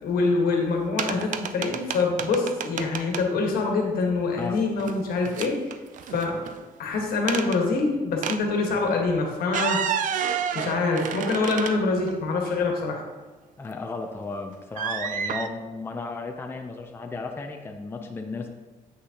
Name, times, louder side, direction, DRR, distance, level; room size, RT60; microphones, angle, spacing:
voice 1, 0.0-5.7 6.1-6.5 6.8-9.8 10.5-13.0, left 3 dB, 75° left, 1 dB, 1.4 m, -25 dB
sound 1, 1.0-3.2 4.6-5.0 5.3-6.6 7.3-7.6 8.2-8.4 9.4-12.1 12.7-12.8 14.8-15.5, right 8 dB, 55° right, 0.4 m, -30 dB
voice 2, 13.6-18.5, left 3 dB, 15° left, 4 dB, 0.5 m, -34 dB
8.0 x 6.0 x 2.8 m, 1.3 s
cardioid pair, 135°, 16 cm